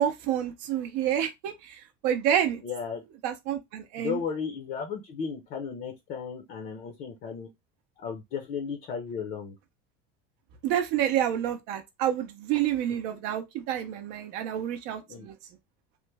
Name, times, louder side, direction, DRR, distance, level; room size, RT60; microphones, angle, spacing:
voice 1, 0.0-2.6 3.2-4.2 10.6-15.4, right 10 dB, 55° right, 0.5 m, -28 dB
voice 2, 2.6-3.0 4.0-7.5 8.0-9.6 15.1-15.3, left 6 dB, 45° left, 0.6 m, -35 dB
3.1 x 2.1 x 3.2 m
cardioid pair, 170°, 20 cm